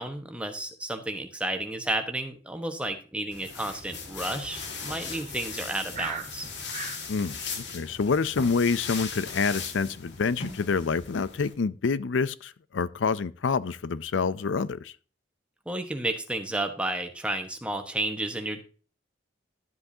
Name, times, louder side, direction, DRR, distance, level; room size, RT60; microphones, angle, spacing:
voice 1, 0.0-6.5 15.7-18.6, right 1 dB, 5° right, 1.2 m, -32 dB
sound 1, 3.3-11.5, left 5 dB, 65° left, 1.9 m, -38 dB
sound 2, 4.2-7.0, right 5 dB, 40° right, 1.9 m, -40 dB
voice 2, 7.1-14.9, left 5 dB, 85° left, 0.5 m, -27 dB
12.0 x 7.9 x 2.8 m
head